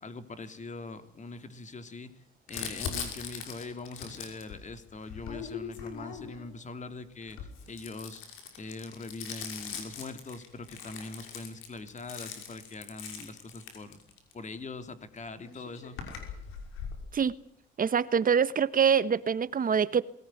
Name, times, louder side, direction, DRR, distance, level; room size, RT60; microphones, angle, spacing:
voice 1, 0.0-2.1 2.5-8.2 8.6-14.0 14.3-16.0, left 3 dB, 35° left, 3.2 m, -42 dB
Crumpling crinkling, 2.5-6.5 7.2-14.3 15.2-15.3 15.4-17.0, left 7 dB, 90° left, 5.9 m, -41 dB
voice 2, 17.8-20.0, right 7 dB, 45° right, 1.3 m, -25 dB
21.0 x 18.5 x 9.3 m
cardioid pair, 85°, 20 cm